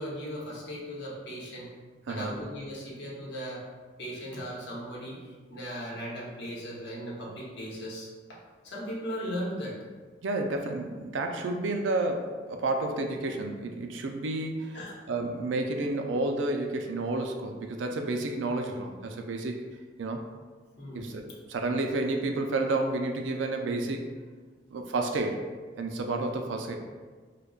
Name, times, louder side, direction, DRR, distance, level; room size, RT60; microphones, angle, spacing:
voice 1, 0.0-1.8 2.1-3.7 4.0-5.2 5.5-8.1 8.6-9.8 14.7-15.0 20.8-21.1, equal, 65° left, -5 dB, 0.9 m, -37 dB
voice 2, 2.1-2.4 10.2-19.7 20.0-20.2 20.9-21.2 21.5-24.1 24.7-25.4 25.8-26.8, right 2 dB, 85° right, 4 dB, 0.4 m, -30 dB
4.9 x 2.2 x 2.3 m, 1.4 s
head